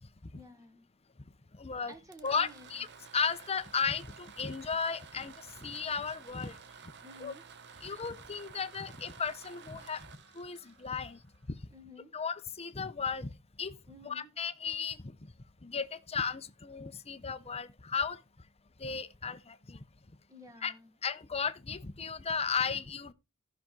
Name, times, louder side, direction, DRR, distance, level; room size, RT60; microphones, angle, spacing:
voice 1, 0.3-0.8 1.9-2.7 7.0-7.4 11.7-12.1 13.9-14.3 20.3-20.9, left 1 dB, 15° right, 1.3 m, -52 dB
voice 2, 1.6-1.9 2.2-2.9 3.1-5.3 5.6-6.5 7.2-7.3 7.8-10.1 10.3-11.2 11.5-11.6 12.1-13.3 13.6-13.7 14.0-15.1 15.6-18.2 18.8-19.8 20.6-20.7 21.0-23.1, left 5 dB, 30° left, 0.8 m, -35 dB
sound 1, 1.9-11.7, right 6 dB, 50° right, 0.9 m, -53 dB
14.5 x 6.0 x 3.8 m
head